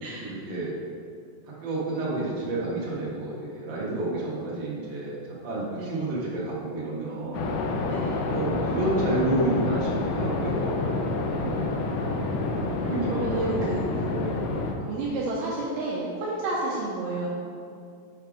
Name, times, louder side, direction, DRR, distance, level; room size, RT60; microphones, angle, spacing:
voice 1, 0.2-0.7 1.6-7.5 8.2-11.0 12.5-13.7 14.0-14.4, right 2 dB, 45° right, -7 dB, 1.6 m, -30 dB
sound 1, 7.3-14.7, left 2 dB, 80° left, 2.1 m, -28 dB
voice 2, 7.9-8.2 11.4-11.7 13.1-13.8 14.8-17.3, right 2 dB, 85° right, -5 dB, 1.5 m, -31 dB
7.4 x 3.4 x 5.0 m, 2.4 s
omnidirectional pair, 4.1 m